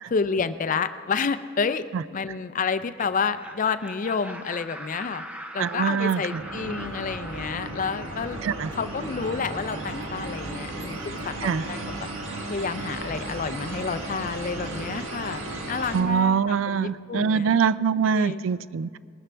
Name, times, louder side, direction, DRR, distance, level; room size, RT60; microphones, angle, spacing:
voice 1, 0.1-5.2 5.5-8.4 8.7-12.1 12.5-17.5 18.1-18.4, left 5 dB, 40° left, 12 dB, 0.4 m, -29 dB
Laughter, 2.8-9.6, right 1 dB, 5° right, 0.6 m, -42 dB
voice 2, 5.6-6.4 8.4-8.7 11.4-11.6 15.9-19.0, right 6 dB, 70° right, 17 dB, 0.3 m, -24 dB
sound 1, 6.3-16.0, right 2 dB, 85° right, 1.6 m, -35 dB
20.5 x 12.5 x 3.4 m, 2.1 s
head